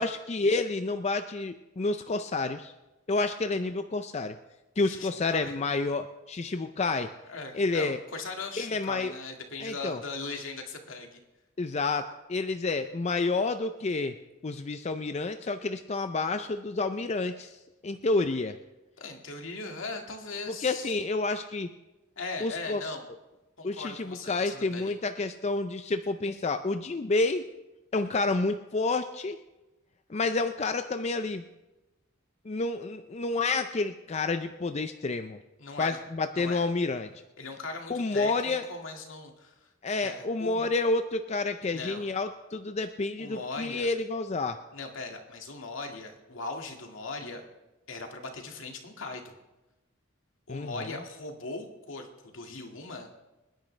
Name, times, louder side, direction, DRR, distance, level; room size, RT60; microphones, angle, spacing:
voice 1, 0.0-2.7 3.1-4.4 4.8-7.1 7.5-8.0 8.6-9.1 9.6-10.0 11.6-14.2 14.4-17.6 17.8-18.6 20.5-21.7 22.4-22.8 23.6-27.4 27.9-29.4 30.1-31.4 32.5-35.4 35.8-37.1 37.9-38.7 39.8-44.6 50.5-50.9, left 3 dB, 35° left, 9 dB, 0.5 m, -29 dB
voice 2, 4.8-5.5 7.3-11.2 19.0-20.9 22.2-23.1 23.6-24.9 35.6-36.0 36.3-36.6 37.4-39.7 40.0-40.7 41.7-42.1 43.2-43.9 44.7-47.4 47.9-49.3 50.5-53.1, left 3 dB, 75° left, 2 dB, 2.0 m, -39 dB
26.0 x 10.5 x 3.3 m, 1.0 s
head